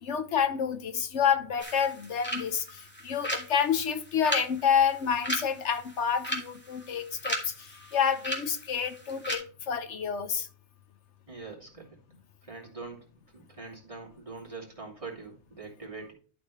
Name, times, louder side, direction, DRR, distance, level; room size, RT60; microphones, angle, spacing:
voice 1, 0.0-7.5 7.9-10.5, left 7 dB, 80° left, 1.2 m, -28 dB
sound 1, 1.6-9.4, equal, 10° left, 2.4 m, -37 dB
voice 2, 11.3-11.9 12.4-13.0 13.3-16.1, right 4 dB, 30° right, 2.7 m, -43 dB
11.5 x 6.3 x 3.2 m
omnidirectional pair, 1.2 m